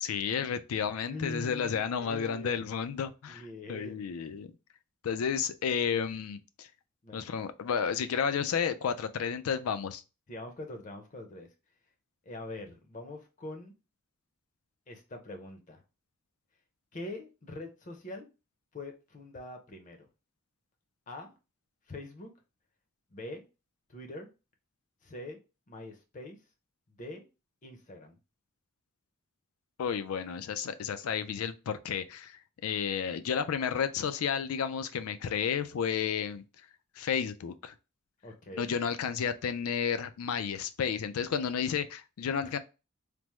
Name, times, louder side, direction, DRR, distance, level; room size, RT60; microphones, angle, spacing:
voice 1, 0.0-4.5 5.0-6.7 7.1-10.0 29.8-36.4 37.0-37.7 38.6-42.6, left 7 dB, 85° left, 0.4 m, -32 dB
voice 2, 1.1-2.5 3.3-4.1 7.0-7.3 10.3-11.5 12.3-13.7 14.9-15.8 16.9-18.3 18.7-20.1 21.1-21.3 21.9-22.3 23.1-23.4 23.9-24.3 25.0-25.4 25.7-26.4 27.0-27.2 27.6-28.2 38.2-38.7 42.4-42.5, left 2 dB, 35° left, 0.6 m, -43 dB
3.3 x 2.0 x 3.0 m
head